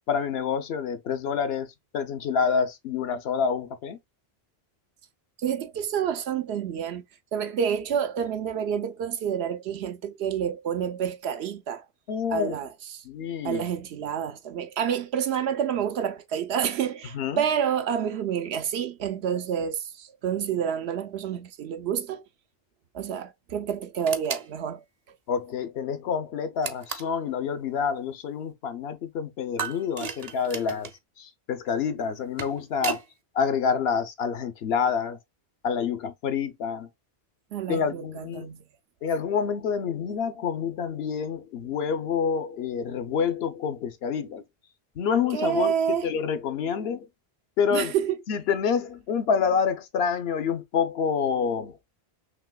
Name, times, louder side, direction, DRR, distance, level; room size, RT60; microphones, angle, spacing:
voice 1, 0.1-4.0 12.1-12.6 13.0-13.7 17.1-17.4 25.3-30.9 31.2-33.0 33.3-35.2 35.6-36.9 37.7-38.5 39.0-44.4 45.0-47.1 47.6-47.9 48.3-51.8, left 6 dB, 80° left, 0.9 m, -27 dB
voice 2, 5.4-7.0 7.3-11.8 12.3-13.0 13.4-22.2 22.9-24.8 37.5-38.6 45.3-46.1 47.7-48.2, right 8 dB, 90° right, 0.9 m, -28 dB
sound 1, 24.1-24.5 26.6-27.2 29.6-31.0 32.1-33.1, right 6 dB, 45° right, 0.6 m, -34 dB
5.9 x 2.8 x 2.3 m
omnidirectional pair, 1.0 m